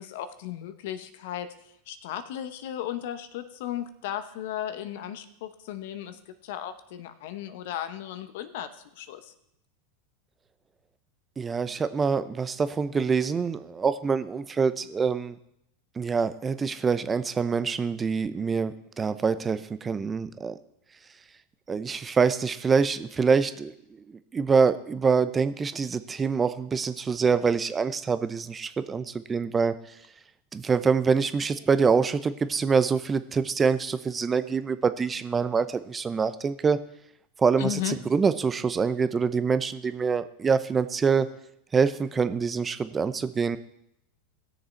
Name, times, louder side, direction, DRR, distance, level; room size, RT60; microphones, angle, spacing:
voice 1, 0.0-1.5 1.9-9.3 37.6-38.0, left 11 dB, 70° left, 11 dB, 1.0 m, -35 dB
voice 2, 11.4-15.4 16.0-20.6 21.7-23.7 24.1-29.8 30.5-36.8 37.4-41.3 41.7-43.6, right 5 dB, 20° right, 12 dB, 0.7 m, -25 dB
17.0 x 6.7 x 4.5 m, 0.78 s
hypercardioid pair, 100°, 0 cm